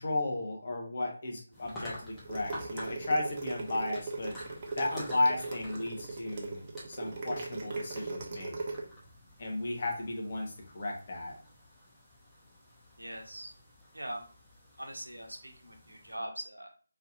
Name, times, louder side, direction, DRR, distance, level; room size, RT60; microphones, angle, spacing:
voice 1, 0.0-4.3 4.8-6.6 6.9-8.6 9.4-11.4, left 1 dB, 40° left, 0 dB, 1.3 m, -34 dB
sound 1, 1.5-16.2, equal, 10° left, 1.1 m, -50 dB
sound 2, 2.2-8.8, right 3 dB, 35° right, 0.8 m, -39 dB
voice 2, 13.0-13.5 13.9-14.2 14.8-16.7, right 1 dB, 80° right, 3 dB, 1.1 m, -42 dB
4.5 x 3.3 x 2.6 m, 0.41 s
figure-of-eight pair, 155°, 0 cm